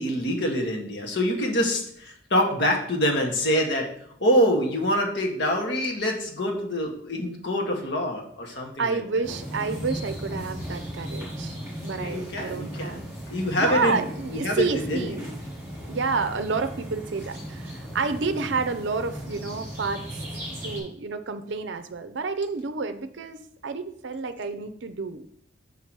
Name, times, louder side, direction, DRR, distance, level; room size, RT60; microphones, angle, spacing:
voice 1, 0.0-3.9 4.2-9.0 12.0-13.0 13.3-15.2, equal, 60° left, 1 dB, 1.6 m, -25 dB
voice 2, 8.8-13.0 13.6-15.3 15.9-20.2 20.6-25.3, right 4 dB, 65° right, 10 dB, 0.5 m, -29 dB
sound 1, 9.2-20.8, equal, 15° right, 3.3 m, -36 dB
5.8 x 5.8 x 4.6 m, 0.67 s
head